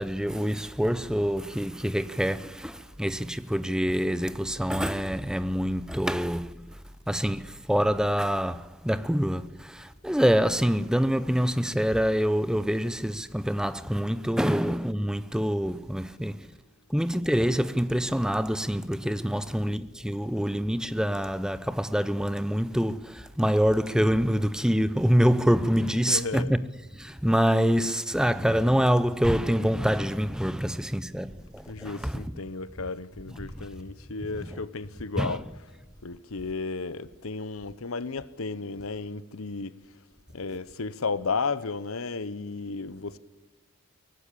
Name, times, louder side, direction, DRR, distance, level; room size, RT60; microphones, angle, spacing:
voice 1, 0.0-6.8 7.1-16.5 16.9-26.6 26.9-32.2 35.2-35.4, equal, 5° right, 0.6 m, -26 dB
voice 2, 26.1-26.5 31.7-35.5 36.0-39.8 40.3-43.2, left 4 dB, 85° left, 1.0 m, -33 dB
23.0 x 18.5 x 8.6 m
head